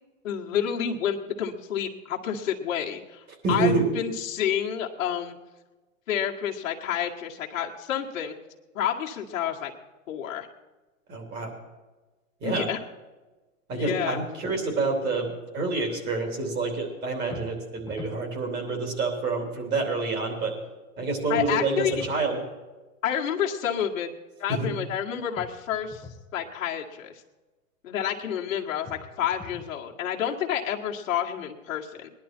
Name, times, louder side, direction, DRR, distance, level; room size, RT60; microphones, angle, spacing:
voice 1, 0.2-5.4 6.1-8.4 8.7-9.7 10.1-10.5 12.4-12.8 13.8-14.2 21.3-22.0 23.0-26.1 26.3-27.2 27.8-32.1, left 9 dB, 65° left, 0 dB, 1.9 m, -29 dB
voice 2, 3.4-3.9 11.1-11.5 12.4-12.7 13.7-20.5 21.0-22.4 24.5-24.7, right 3 dB, 25° right, 2 dB, 3.1 m, -27 dB
sound 1, 17.3-18.2 21.4-22.2 25.3-26.2 28.8-29.8, left 5 dB, 10° left, 1.2 m, -43 dB
19.5 x 11.0 x 4.5 m, 1.2 s
hypercardioid pair, 135°, 43 cm